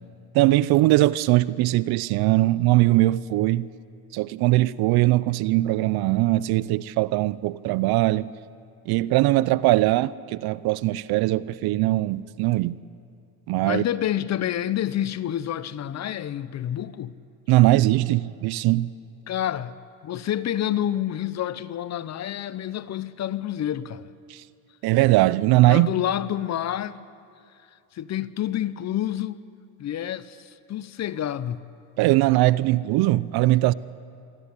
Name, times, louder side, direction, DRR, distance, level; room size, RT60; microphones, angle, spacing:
voice 1, 0.3-3.7 4.1-8.3 8.9-12.8 13.5-13.8 17.5-18.9 24.3-24.4 24.8-25.9 32.0-33.7, right 17 dB, 55° right, 0.7 m, -20 dB
voice 2, 13.6-17.1 19.3-19.7 20.0-24.1 25.7-27.0 27.9-29.4 29.8-31.6, left 11 dB, 35° left, 0.8 m, -28 dB
23.5 x 14.0 x 9.8 m
supercardioid pair, 100°, 44 cm